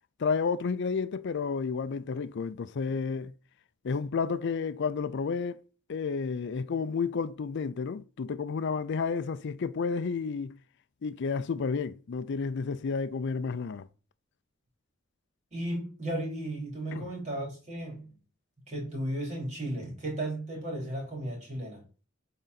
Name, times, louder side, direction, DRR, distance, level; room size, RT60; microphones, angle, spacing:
voice 1, 0.2-3.3 3.8-5.6 5.9-10.6 11.0-13.9 16.9-17.1, left 5 dB, 60° left, 0.4 m, -31 dB
voice 2, 15.5-18.2 18.7-21.8, right 1 dB, 35° right, 3.4 m, -35 dB
8.2 x 3.8 x 4.0 m
head